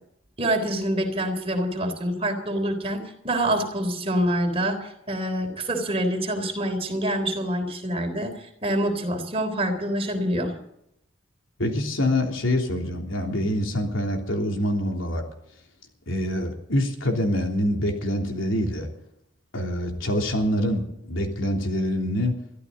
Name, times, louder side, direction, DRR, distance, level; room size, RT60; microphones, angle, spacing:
voice 1, 0.4-10.5, right 1 dB, 30° right, 4 dB, 3.7 m, -26 dB
voice 2, 11.6-15.2 16.1-18.9 19.5-22.3, left 1 dB, 85° left, 2 dB, 3.4 m, -25 dB
23.0 x 14.0 x 4.1 m, 0.78 s
head